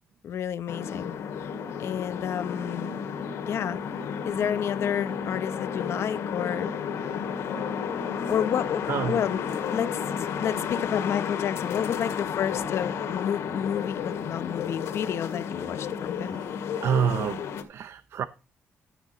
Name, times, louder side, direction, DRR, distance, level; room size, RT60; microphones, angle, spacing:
voice 1, 0.2-1.2 1.8-2.9 3.5-3.8 4.2-6.7 8.3-9.4 9.7-16.4, left 9 dB, 65° left, 1.0 m, -30 dB
sound 1, 0.7-17.6, left 7 dB, 80° left, 2.2 m, -32 dB
voice 2, 8.9-9.2 16.3-16.5 16.8-18.3, right 8 dB, 65° right, 0.7 m, -28 dB
15.0 x 6.2 x 4.0 m
cardioid pair, 95°, 5 cm